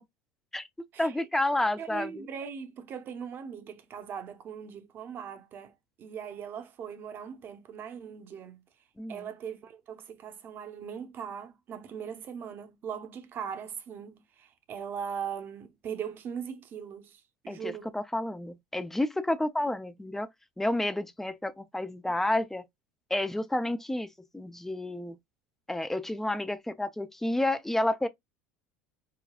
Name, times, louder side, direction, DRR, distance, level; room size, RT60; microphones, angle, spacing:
voice 1, 1.0-2.2 9.0-9.3 17.5-20.3 20.6-22.6 23.1-25.2 25.7-28.1, left 1 dB, 5° left, 0.5 m, -30 dB
voice 2, 1.8-8.6 9.1-18.0, right 7 dB, 40° right, 0.8 m, -40 dB
4.9 x 2.2 x 2.3 m
supercardioid pair, 110°, 5 cm